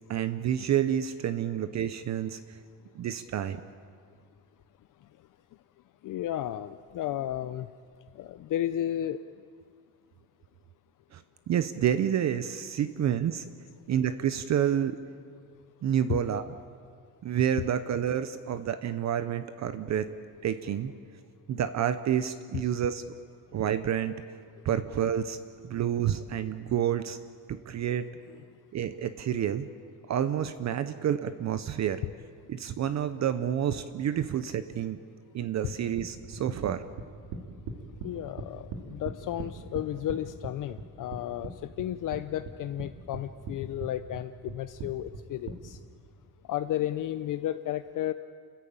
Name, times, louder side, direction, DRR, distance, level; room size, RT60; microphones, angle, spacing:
voice 1, 0.1-2.4 3.0-3.6 11.1-11.2 11.5-13.4 13.9-15.0 15.8-16.5 17.2-20.1 20.4-20.9 21.5-23.0 23.5-24.1 24.6-25.4 25.7-27.2 27.5-28.1 28.7-29.7 30.1-32.0 32.5-35.0 35.3-36.8, right 9 dB, 45° right, 12 dB, 0.7 m, -29 dB
voice 2, 6.0-7.7 8.2-9.2 16.1-16.2 17.6-17.7 28.3-28.4 38.0-45.8 46.5-48.1, left 12 dB, 55° left, 11 dB, 0.6 m, -33 dB
sound 1, 35.7-38.1 38.4-40.2 40.4-41.5 41.8-42.9 43.1-43.5 43.8-45.6, right 4 dB, 85° right, 2.6 m, -38 dB
30.0 x 14.0 x 8.7 m, 2.1 s
cardioid pair, 180°, 39 cm